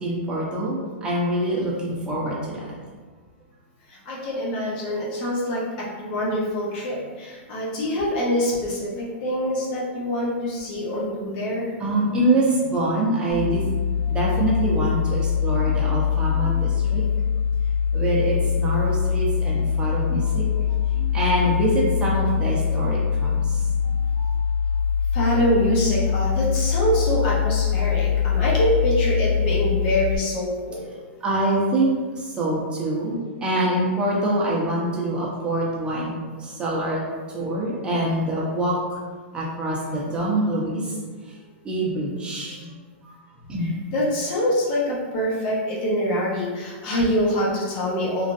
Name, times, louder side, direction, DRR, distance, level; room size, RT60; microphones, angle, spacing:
voice 1, 0.0-2.4 11.8-13.6 14.1-17.0 17.9-20.4 21.1-23.4 31.2-31.9 32.4-36.1 36.6-37.0 37.3-38.7 39.3-40.8 41.7-42.5 43.5-43.7, right 1 dB, 15° right, -5 dB, 0.7 m, -24 dB
voice 2, 3.9-11.7 25.1-30.8 43.6-48.3, equal, 50° left, -4 dB, 0.9 m, -25 dB
sound 1, 13.3-30.2, left 7 dB, 75° right, 0.8 m, -23 dB
3.1 x 2.5 x 2.5 m, 1.4 s
hypercardioid pair, 140°, 6 cm